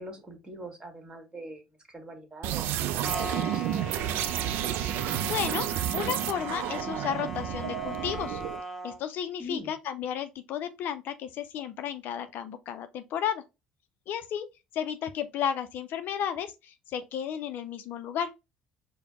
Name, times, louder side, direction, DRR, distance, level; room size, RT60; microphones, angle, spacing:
voice 1, 0.0-1.6 1.9-4.3 9.4-9.7, equal, 20° right, 1.5 m, -43 dB
sound 1, 2.4-8.6, right 12 dB, 60° right, 0.3 m, -31 dB
sound 2, 3.0-9.0, equal, 5° right, 0.9 m, -39 dB
voice 2, 5.2-8.4 8.8-13.4 14.1-14.5 14.7-18.3, left 9 dB, 55° left, 0.4 m, -33 dB
4.9 x 2.1 x 3.5 m
hypercardioid pair, 60°, 4 cm